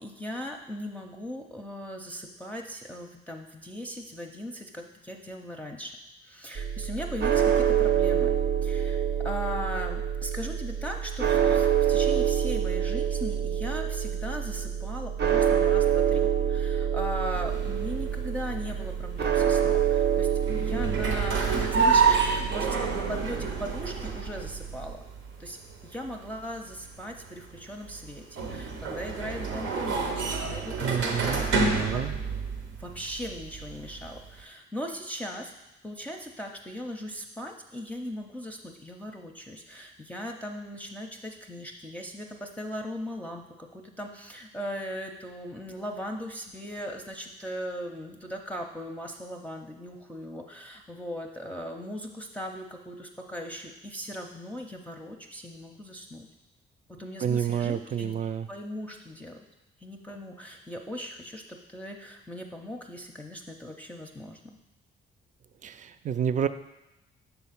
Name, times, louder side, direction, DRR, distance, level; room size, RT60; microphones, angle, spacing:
voice 1, 0.0-6.0 6.2-20.3 20.6-25.0 25.4-25.6 25.8-32.0 32.8-35.5 35.8-56.3 57.0-58.2 58.5-59.4 59.8-64.6, equal, 5° left, 1 dB, 0.6 m, -38 dB
sound 1, 6.6-24.9, right 9 dB, 60° right, 0.8 m, -27 dB
sound 2, 17.3-34.4, right 5 dB, 85° right, 0.9 m, -30 dB
voice 2, 30.8-32.1 57.2-58.5 65.6-66.5, right 8 dB, 40° right, 12 dB, 0.4 m, -29 dB
7.0 x 3.4 x 5.8 m, 0.97 s
cardioid pair, 90°, 20 cm